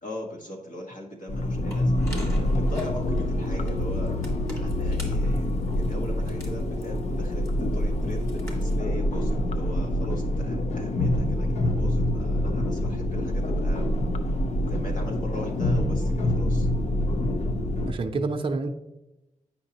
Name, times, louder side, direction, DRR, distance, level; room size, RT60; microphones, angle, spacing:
voice 1, 0.0-4.1 4.6-13.9 14.7-16.7, equal, 75° left, 1 dB, 1.5 m, -40 dB
sound 1, 1.3-17.9, left 1 dB, 55° left, 0.6 m, -26 dB
sound 2, 1.7-8.8, equal, 20° left, 1.8 m, -41 dB
voice 2, 17.6-18.7, right 3 dB, 40° right, 2 dB, 0.5 m, -29 dB
8.8 x 5.6 x 2.9 m, 0.94 s
wide cardioid pair, 115°, 14 cm